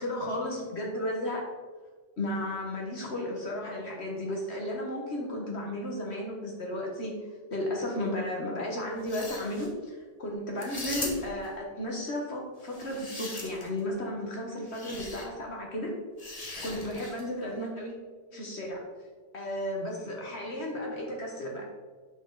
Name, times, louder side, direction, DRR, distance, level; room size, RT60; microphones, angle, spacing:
voice 1, 0.0-1.5 2.2-7.1 7.5-15.9 16.6-18.0 18.3-18.8 19.3-21.6, left 1 dB, 60° left, -1 dB, 1.6 m, -34 dB
sound 1, 9.0-9.7 10.6-11.5 12.6-13.8 14.7-15.3 16.2-17.3, left 2 dB, 30° left, 1.4 m, -39 dB
9.2 x 6.2 x 3.9 m, 1.4 s
omnidirectional pair, 1.2 m